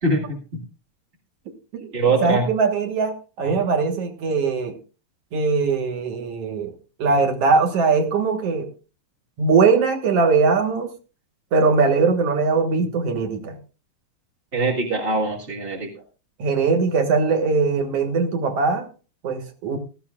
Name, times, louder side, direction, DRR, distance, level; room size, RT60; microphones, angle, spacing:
voice 1, 0.0-0.4 1.9-2.5 14.5-15.9, right 3 dB, 25° right, 1.3 m, -22 dB
voice 2, 2.2-4.7 5.3-6.7 7.0-8.7 9.4-10.9 11.5-13.6 16.4-18.9 19.2-19.8, right 4 dB, 55° right, 2.2 m, -20 dB
16.0 x 14.0 x 2.4 m
omnidirectional pair, 3.7 m